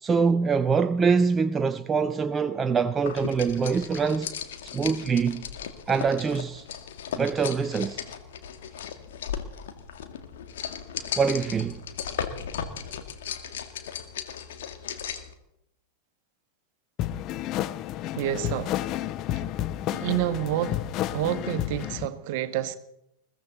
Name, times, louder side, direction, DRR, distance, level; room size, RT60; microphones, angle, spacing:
voice 1, 0.0-4.3 4.6-5.4 5.9-6.7 7.2-8.0 11.2-11.8, right 5 dB, 20° right, 0.6 m, -24 dB
sound 1, 3.1-15.3, left 8 dB, 60° left, 1.9 m, -36 dB
sound 2, 17.0-22.1, left 13 dB, 35° left, 0.7 m, -31 dB
voice 2, 18.1-18.9 19.9-20.8 21.1-22.7, right 13 dB, 50° right, 1.5 m, -28 dB
21.5 x 16.5 x 4.1 m
figure-of-eight pair, 90°, 0 cm